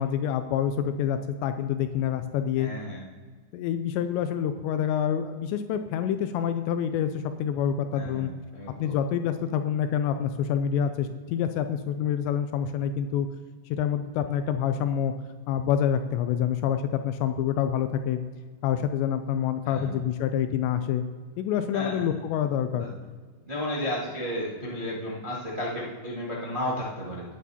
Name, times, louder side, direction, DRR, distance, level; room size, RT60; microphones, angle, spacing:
voice 1, 0.0-2.7 3.5-8.3 8.8-13.3 13.7-15.1 15.5-18.2 18.6-21.0 21.4-22.9, left 9 dB, 85° left, 9 dB, 2.6 m, -27 dB
voice 2, 2.6-3.1 7.9-8.9 19.6-20.0 21.7-22.1 22.7-22.9 23.5-27.2, left 1 dB, 50° right, -8 dB, 0.5 m, -33 dB
18.5 x 8.4 x 2.8 m, 1.5 s
omnidirectional pair, 5.3 m